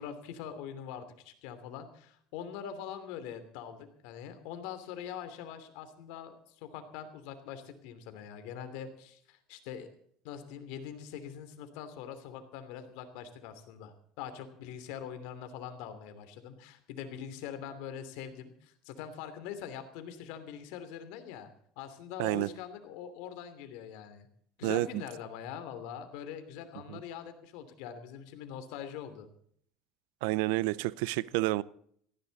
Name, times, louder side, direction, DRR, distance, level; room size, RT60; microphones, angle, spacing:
voice 1, 0.0-9.9 10.2-21.5 21.8-24.3 24.6-29.3, left 8 dB, 75° left, 2.9 m, -43 dB
voice 2, 22.2-22.5 24.6-25.0 26.9-27.0 30.2-31.6, right 19 dB, 85° right, 0.6 m, -29 dB
18.0 x 15.5 x 4.1 m
cardioid pair, 135°, 0 cm